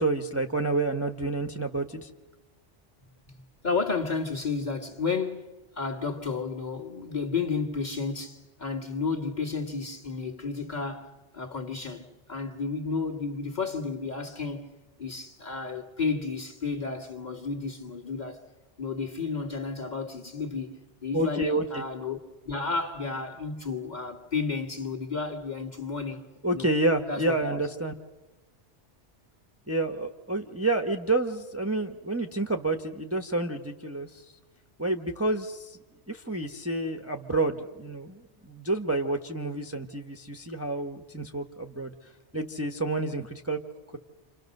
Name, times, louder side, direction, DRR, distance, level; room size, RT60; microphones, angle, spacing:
voice 1, 0.0-2.1 21.1-21.8 26.4-27.9 29.7-34.2 34.8-35.8 36.1-41.9 42.3-43.6, right 2 dB, 15° right, 1.1 m, -29 dB
voice 2, 3.6-14.7 15.0-18.4 18.8-22.2 22.4-26.2 26.5-26.7 27.1-27.6, left 4 dB, 40° left, 2.2 m, -32 dB
29.0 x 27.0 x 6.6 m
omnidirectional pair, 1.2 m